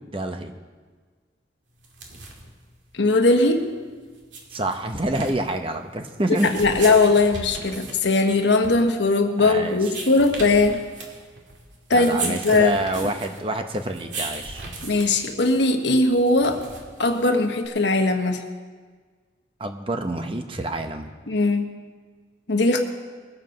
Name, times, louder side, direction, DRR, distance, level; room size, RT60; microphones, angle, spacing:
voice 1, 0.1-0.5 4.5-6.5 9.4-9.8 11.9-14.6 19.6-21.1, right 1 dB, 30° right, 6 dB, 0.9 m, -27 dB
sound 1, 1.8-17.7, right 3 dB, 80° right, 2.3 m, -38 dB
voice 2, 2.9-3.7 6.4-10.8 11.9-13.1 14.8-16.6 17.0-18.4 21.3-21.6 22.5-22.8, left 2 dB, 70° left, 4 dB, 1.2 m, -20 dB
20.5 x 7.5 x 5.3 m, 1.5 s
head